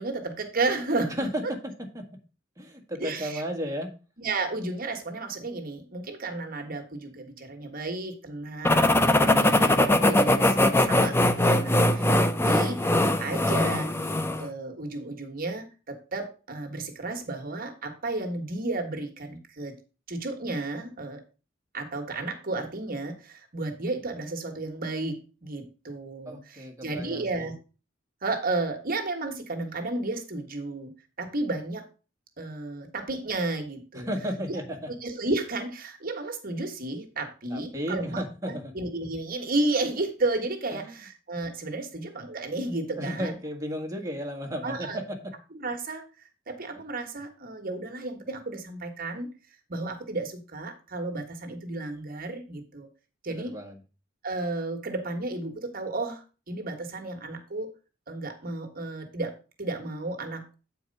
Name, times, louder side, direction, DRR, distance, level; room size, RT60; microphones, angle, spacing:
voice 1, 0.0-1.3 3.0-3.4 4.2-12.1 12.4-12.8 13.2-14.0 14.4-19.7 20.1-21.2 21.7-27.5 28.2-30.9 31.2-31.8 32.4-34.1 35.0-43.3 44.6-45.0 45.5-46.0 46.5-49.3 49.7-52.9 53.2-53.5 54.2-57.7 58.1-60.5, right 2 dB, 45° right, 4 dB, 1.5 m, -33 dB
voice 2, 2.6-3.9 26.3-27.2 33.9-34.9 37.5-38.7 40.7-40.9 43.0-45.2 53.3-53.8, equal, 15° right, 2 dB, 1.7 m, -33 dB
sound 1, 8.6-14.5, left 1 dB, 10° left, 0.6 m, -21 dB
8.6 x 4.7 x 5.3 m, 0.33 s
head